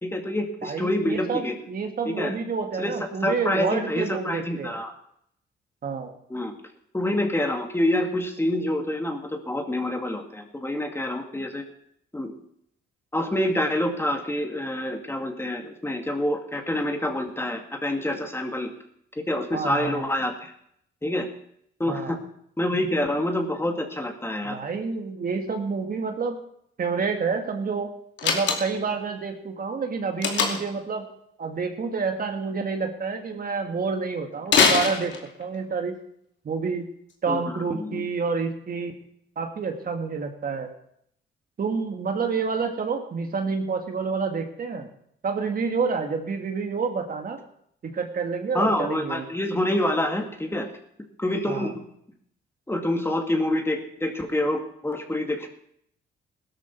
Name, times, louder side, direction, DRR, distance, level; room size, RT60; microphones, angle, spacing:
voice 1, 0.0-1.5 2.1-2.4 2.8-3.0 3.2-4.9 6.3-6.5 6.9-11.6 12.1-12.3 13.1-18.7 19.2-20.5 21.0-21.3 21.8-22.2 22.6-24.6 37.3-38.1 48.5-50.7 51.2-51.8 52.7-55.5, left 1 dB, 10° left, 4 dB, 2.3 m, -27 dB
voice 2, 0.6-4.7 5.8-6.1 19.5-20.1 21.9-22.2 24.4-26.4 26.8-27.9 28.2-31.1 31.4-36.0 36.4-36.9 37.2-38.9 39.4-40.7 41.6-44.9 45.2-47.4 47.8-49.3 51.5-51.7, right 5 dB, 45° right, 5 dB, 2.1 m, -28 dB
Slam, 28.2-28.9 30.2-30.8 34.5-35.6, left 5 dB, 65° left, 2.6 m, -22 dB
16.5 x 13.0 x 4.6 m, 0.70 s
cardioid pair, 90°, 20 cm